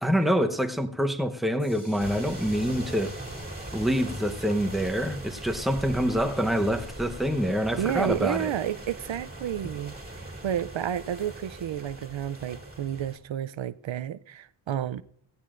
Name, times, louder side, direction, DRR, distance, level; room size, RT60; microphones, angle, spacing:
voice 1, 0.0-3.1 3.7-8.5, equal, ahead, 0.8 m, -26 dB
sound 1, 1.6-7.4, left 1 dB, 20° left, 4.3 m, -54 dB
sound 2, 2.0-13.2, right 1 dB, 20° right, 2.2 m, -40 dB
voice 2, 7.8-15.0, right 10 dB, 75° right, 0.5 m, -31 dB
17.5 x 15.5 x 2.5 m
wide cardioid pair, 105°, 47 cm